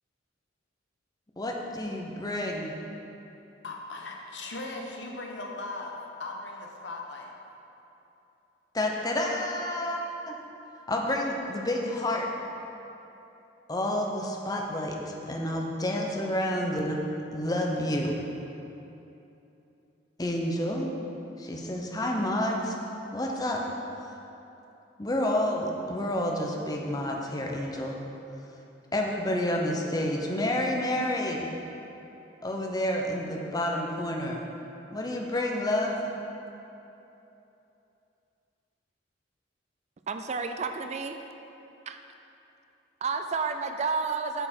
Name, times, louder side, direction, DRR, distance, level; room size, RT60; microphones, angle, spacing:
voice 1, 1.4-2.9 8.7-10.0 10.3-10.4 10.9-12.3 13.7-17.0 17.3-18.1 20.2-20.9 21.4-22.8 23.1-23.6 25.0-28.0 28.9-31.5 32.4-34.4 34.9-36.1, left 1 dB, 20° left, 0 dB, 0.7 m, -29 dB
voice 2, 3.6-7.3, left 2 dB, 65° left, 0 dB, 1.0 m, -38 dB
voice 3, 40.1-41.2 41.9-42.0 43.0-44.5, right 4 dB, 35° right, 7 dB, 0.3 m, -30 dB
9.0 x 6.6 x 4.4 m, 2.9 s
head